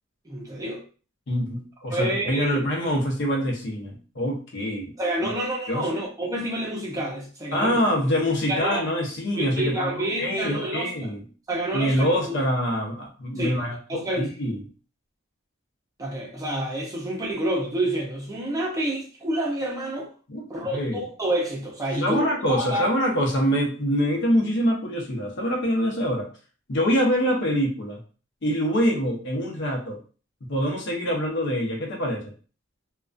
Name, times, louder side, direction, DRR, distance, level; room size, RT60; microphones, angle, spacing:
voice 1, 0.3-0.8 1.9-2.6 5.0-7.8 8.5-8.8 9.4-11.1 11.5-12.4 13.4-14.3 16.0-20.1 20.5-22.9, right 1 dB, 15° right, 0.5 m, -28 dB
voice 2, 1.3-4.9 5.2-5.3 5.7-5.9 7.5-11.2 11.7-14.6 20.3-20.4 20.7-21.0 21.9-26.3 26.7-28.0 28.4-30.0 30.4-32.3, equal, 55° left, 0.7 m, -25 dB
2.3 x 2.2 x 2.4 m
head